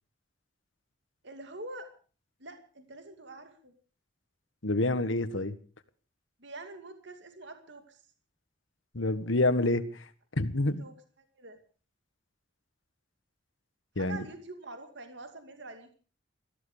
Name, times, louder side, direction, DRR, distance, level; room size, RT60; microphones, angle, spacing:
voice 1, 1.2-1.9 2.4-3.7 6.4-8.0 10.8-11.6 14.0-15.9, right 2 dB, 65° right, 2.4 m, -45 dB
voice 2, 4.6-5.5 8.9-9.8 10.4-10.8 14.0-14.2, left 2 dB, 80° left, 1.6 m, -27 dB
19.0 x 15.5 x 5.0 m
head